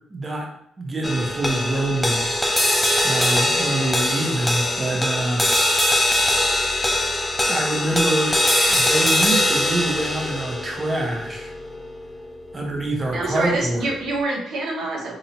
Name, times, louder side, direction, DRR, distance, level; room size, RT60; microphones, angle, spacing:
voice 1, 0.1-0.5 0.8-2.4 3.0-5.5 7.5-8.4 8.7-11.5 12.5-13.9, right 2 dB, 25° right, 0 dB, 0.8 m, -25 dB
sound 1, 1.0-13.5, left 1 dB, 10° left, 0.5 m, -22 dB
voice 2, 13.1-15.2, right 2 dB, 75° right, -1 dB, 0.8 m, -26 dB
4.2 x 2.7 x 2.8 m, 0.72 s
cardioid pair, 90°, 0 cm